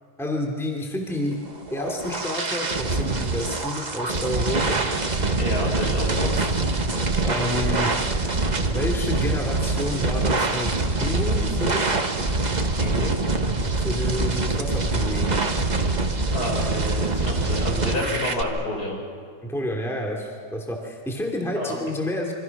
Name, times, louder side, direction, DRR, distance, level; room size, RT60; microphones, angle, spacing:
voice 1, 0.2-1.4 1.7-5.0 6.1-6.5 7.2-7.9 8.7-10.7 11.0-11.9 13.8-15.4 17.2-17.3 19.4-22.3, left 1 dB, ahead, 0 dB, 2.7 m, -29 dB
sound 1, 1.5-18.4, right 3 dB, 25° right, 1.3 m, -24 dB
voice 2, 5.4-6.3 12.7-13.1 16.3-19.0 21.5-21.8, left 1 dB, 60° left, -1 dB, 6.7 m, -29 dB
28.0 x 26.0 x 6.1 m, 2.1 s
omnidirectional pair, 1.9 m